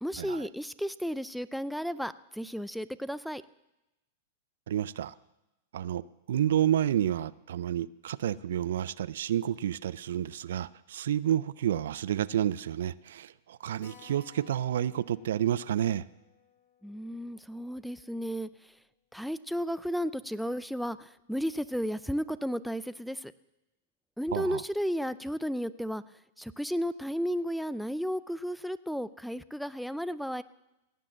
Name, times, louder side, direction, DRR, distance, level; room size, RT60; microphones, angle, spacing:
voice 1, 0.0-3.4 16.8-18.8 19.1-23.3 24.2-26.0 26.4-30.4, equal, ahead, 0.4 m, -33 dB
voice 2, 4.7-5.1 5.7-16.0 24.3-24.6, right 11 dB, 75° right, 0.4 m, -30 dB
Keyboard (musical), 13.8-18.9 19.1-19.2 19.5-19.6 19.9-20.0 20.6-20.9, left 7 dB, 70° left, 3.2 m, -59 dB
17.5 x 7.7 x 7.4 m
hypercardioid pair, 120°, 0 cm